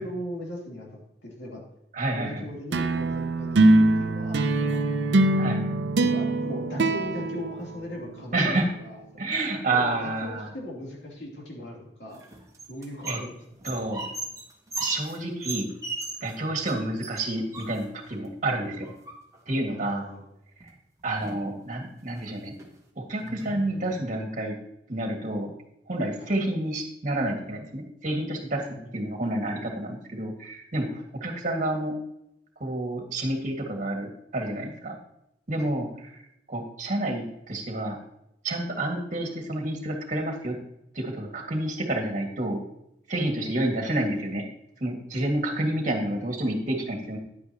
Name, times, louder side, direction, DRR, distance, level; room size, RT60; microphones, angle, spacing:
voice 1, 0.0-1.6 2.1-4.8 6.0-9.0 9.6-12.2 12.7-13.4 16.4-16.5 19.7-20.3 26.2-26.3 28.7-28.9 35.6-35.7 43.4-43.5 45.7-46.2, left 1 dB, 85° left, -2 dB, 2.9 m, -39 dB
voice 2, 1.9-2.4 5.4-5.6 8.3-8.7 9.2-10.5 13.1-13.2 13.6-14.0 14.8-15.7 16.2-18.9 19.5-20.1 21.0-22.5 23.0-24.6 24.9-25.5 25.9-28.6 28.9-31.9 32.6-35.0 35.5-36.2 36.5-38.0 38.4-40.6 40.9-42.6 43.1-44.4 44.8-47.2, right 1 dB, 45° right, 3 dB, 1.9 m, -29 dB
sound 1, 2.7-8.3, right 2 dB, 80° right, 0.6 m, -23 dB
sound 2, 12.1-13.3 13.6-16.4 16.7-16.8 17.0-18.2 18.8-19.5 20.6-20.7 21.0-21.5 22.0-22.2 22.6-22.7 23.2-24.0, right 3 dB, 20° right, 1.5 m, -37 dB
10.0 x 9.5 x 2.9 m, 0.80 s
head